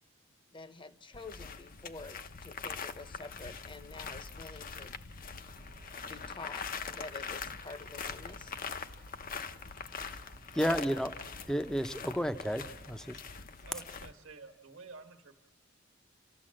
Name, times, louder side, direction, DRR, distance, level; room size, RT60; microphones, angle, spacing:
voice 1, 0.5-5.0 6.0-8.5, left 3 dB, 25° left, 11 dB, 0.9 m, -48 dB
sound 1, 1.1-14.1, left 5 dB, 45° left, 0.7 m, -43 dB
sound 2, 5.4-13.1, right 1 dB, 35° right, 1.4 m, -57 dB
voice 2, 10.2-11.2 11.5-13.2, equal, 5° left, 9 dB, 0.7 m, -32 dB
voice 3, 13.6-15.4, right 4 dB, 70° right, 5 dB, 1.4 m, -50 dB
30.0 x 14.0 x 7.6 m, 1.2 s
head